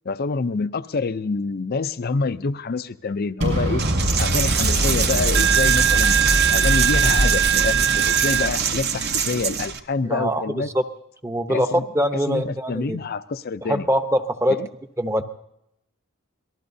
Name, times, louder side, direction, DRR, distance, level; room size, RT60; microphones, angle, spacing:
voice 1, 0.1-3.8 4.2-6.2 6.5-10.7 11.5-11.9 12.3-13.9 14.5-14.7, left 4 dB, 50° left, 14 dB, 0.5 m, -27 dB
Explosion, 3.4-9.4, equal, 70° right, 6.3 m, -24 dB
Coin (dropping), 3.8-9.8, right 8 dB, 50° right, 0.9 m, -21 dB
voice 2, 10.0-10.8 11.2-13.0 13.7-14.6 15.0-15.2, equal, 15° right, 8 dB, 0.8 m, -23 dB
26.0 x 19.0 x 2.7 m, 0.82 s
head